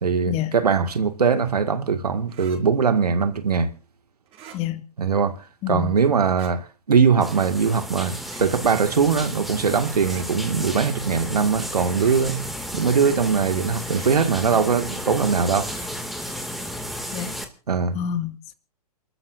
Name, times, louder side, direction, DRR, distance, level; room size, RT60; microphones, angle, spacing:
voice 1, 0.0-3.7 5.0-5.4 5.7-12.4 12.7-15.7 17.7-18.0, right 6 dB, 80° right, 2.1 m, -21 dB
sound 1, 2.3-2.6 4.3-4.6 6.2-6.5 8.2-8.4 10.0-10.3 12.0-12.2 13.8-14.1 15.6-15.9, right 7 dB, 30° right, 5.8 m, -44 dB
voice 2, 5.6-6.0 17.1-17.3 17.9-18.5, left 10 dB, 30° left, 2.2 m, -28 dB
sound 2, 7.2-17.4, equal, ahead, 2.4 m, -33 dB
28.5 x 13.5 x 2.7 m
hypercardioid pair, 120°, 20 cm